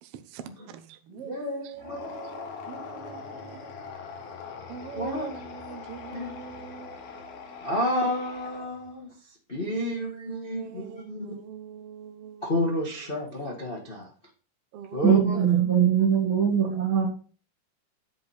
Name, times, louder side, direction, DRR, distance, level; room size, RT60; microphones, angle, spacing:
voice 1, 0.0-3.7 4.7-7.7 9.6-13.9 14.7-16.6, right 8 dB, 75° right, 1.4 m, -43 dB
voice 2, 1.1-2.0 4.9-5.3 6.1-6.3 7.6-9.1 9.5-11.4 12.4-14.1 14.9-15.4, left 1 dB, 30° left, 1.0 m, -30 dB
sound 1, 1.8-8.9, left 5 dB, 65° left, 2.7 m, -42 dB
voice 3, 15.0-17.1, right 8 dB, 45° right, 2.1 m, -21 dB
10.0 x 5.1 x 4.3 m
omnidirectional pair, 3.8 m